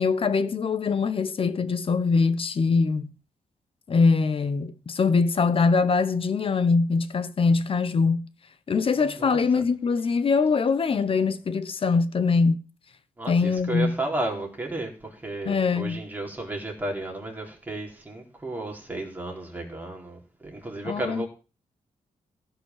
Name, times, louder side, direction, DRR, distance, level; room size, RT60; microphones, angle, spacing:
voice 1, 0.0-3.1 3.9-8.3 8.7-12.6 13.3-13.9 15.4-16.0 20.8-21.2, left 4 dB, 40° left, 1.1 m, -23 dB
voice 2, 8.9-9.4 13.2-21.3, right 2 dB, 10° right, 4.2 m, -33 dB
16.5 x 6.2 x 7.3 m
wide cardioid pair, 145°, 14 cm